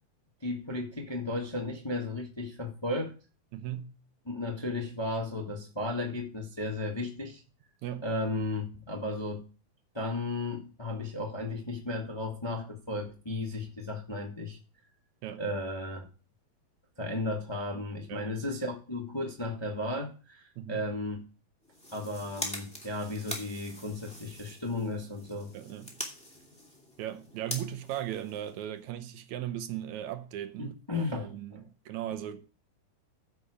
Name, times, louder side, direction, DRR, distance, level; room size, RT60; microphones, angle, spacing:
voice 1, 0.4-3.1 4.2-7.4 8.0-9.4 9.9-14.6 15.4-16.1 17.0-21.2 21.9-25.5 30.6-31.6, left 2 dB, 40° left, 0.4 m, -34 dB
voice 2, 3.5-3.9 7.8-8.1 15.2-15.4 18.1-18.3 20.6-20.8 25.5-26.0 27.0-32.5, right 11 dB, 75° right, 2.0 m, -38 dB
sound 1, 21.6-28.9, left 1 dB, ahead, 2.2 m, -43 dB
14.5 x 5.4 x 4.9 m
omnidirectional pair, 3.6 m